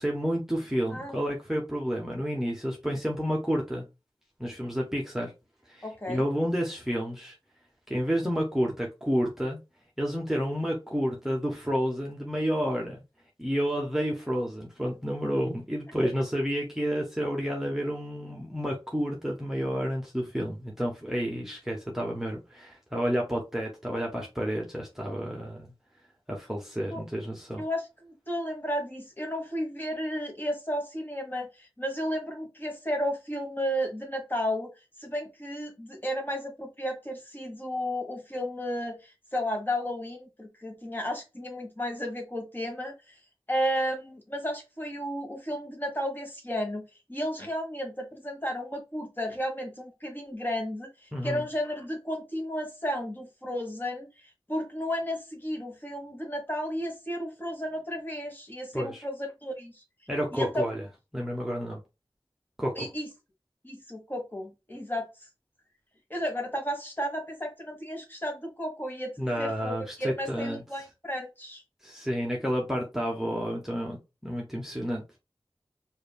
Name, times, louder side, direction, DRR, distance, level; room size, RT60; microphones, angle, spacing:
voice 1, 0.0-3.8 4.4-5.3 5.7-7.3 7.9-9.6 10.0-13.0 13.4-25.7 26.3-27.6 51.1-51.5 58.7-59.0 60.1-60.8 61.1-61.8 62.6-62.9 69.2-70.6 71.8-75.2, equal, 5° right, 1.0 m, -30 dB
voice 2, 5.8-6.3 26.9-27.0 27.6-34.7 35.0-43.2 43.5-46.8 47.1-54.1 54.5-59.8 60.3-60.6 62.7-63.1 63.6-65.0 66.1-71.6, equal, 20° left, 1.5 m, -33 dB
4.8 x 2.7 x 2.3 m
wide cardioid pair, 60°, 9 cm